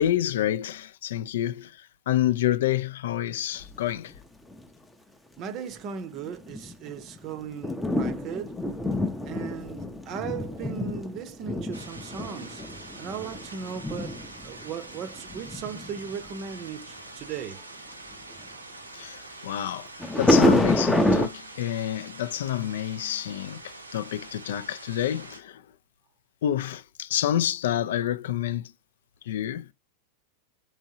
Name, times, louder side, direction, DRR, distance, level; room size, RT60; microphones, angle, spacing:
voice 1, 0.0-1.7 2.1-4.1 18.9-19.9 20.2-25.6 26.4-28.7 29.3-29.7, left 11 dB, 60° left, 0.3 m, -28 dB
sound 1, 4.0-4.1 4.5-4.6 5.5-5.6 6.2-16.3 20.0-21.3, left 1 dB, 5° left, 0.5 m, -27 dB
voice 2, 5.4-8.6 9.2-12.6 13.0-17.6, right 7 dB, 35° right, 0.6 m, -37 dB
sound 2, 11.7-25.4, right 2 dB, 85° right, 0.7 m, -45 dB
3.6 x 3.1 x 2.7 m
figure-of-eight pair, 90°, 0 cm